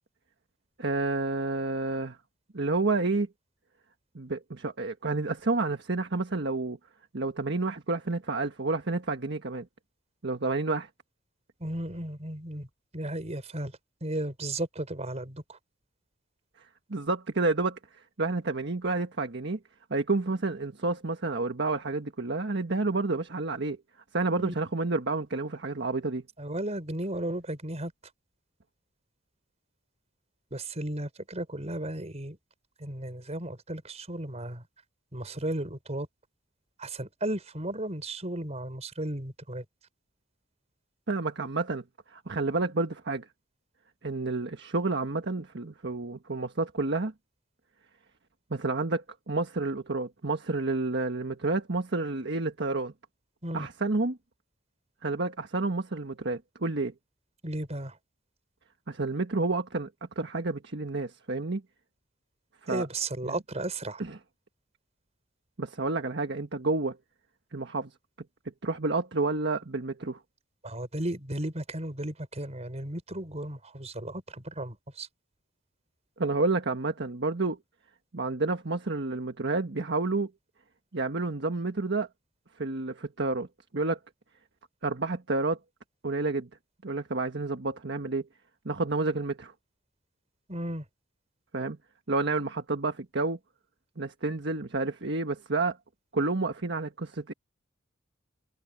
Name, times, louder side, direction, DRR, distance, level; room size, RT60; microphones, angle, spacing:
voice 1, 0.8-2.2 2.5-3.3 4.1-6.8 7.1-9.7 10.2-10.9 16.9-17.8 18.2-19.6 19.9-23.8 24.1-26.2 41.1-41.8 42.1-43.2 44.0-47.1 48.5-52.9 53.5-54.2 55.0-56.9 58.9-59.9 60.2-61.6 62.6-62.9 63.2-63.4 64.0-64.2 65.6-67.0 67.5-67.9 68.6-70.2 76.2-77.6 78.1-80.3 80.9-82.1 82.6-83.5 83.7-84.0 84.8-85.6 86.0-86.5 86.8-88.3 88.6-89.5 91.5-91.8 92.1-93.4 94.0-95.8 96.1-97.3, right 3 dB, 65° right, 1.5 m, -29 dB
voice 2, 11.6-12.7 12.9-13.7 14.0-15.6 24.4-24.5 26.4-27.9 30.5-32.4 32.8-34.6 35.1-36.1 36.8-39.6 53.4-53.7 57.4-58.0 62.7-64.0 70.6-75.1 90.5-90.8, right 1 dB, 35° right, 5.3 m, -34 dB
head